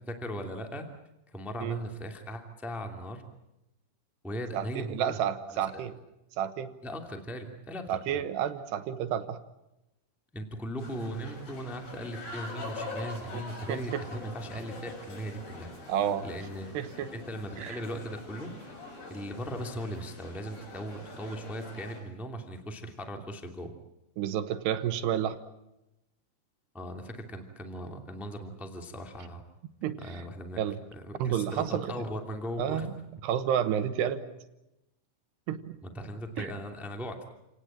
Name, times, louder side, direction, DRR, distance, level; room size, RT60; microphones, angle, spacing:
voice 1, 0.1-0.8 1.3-3.2 4.2-5.2 6.8-8.2 10.3-15.7 16.2-16.8 17.1-18.5 19.1-23.7 26.7-29.4 30.0-30.6 30.9-32.9 35.8-37.3, equal, ahead, 4 dB, 1.3 m, -38 dB
voice 2, 4.5-5.9 6.4-6.7 7.9-9.4 13.3-13.4 13.7-14.0 15.9-16.3 16.7-17.1 17.6-17.8 24.2-25.4 29.8-30.2 30.6-30.8 31.2-31.9 32.6-32.9 33.2-34.2 35.5-35.8 36.4-36.5, right 9 dB, 75° right, 11 dB, 3.1 m, -30 dB
sound 1, 10.8-22.0, left 2 dB, 60° left, 9.3 m, -44 dB
29.0 x 19.0 x 8.8 m, 0.91 s
omnidirectional pair, 5.2 m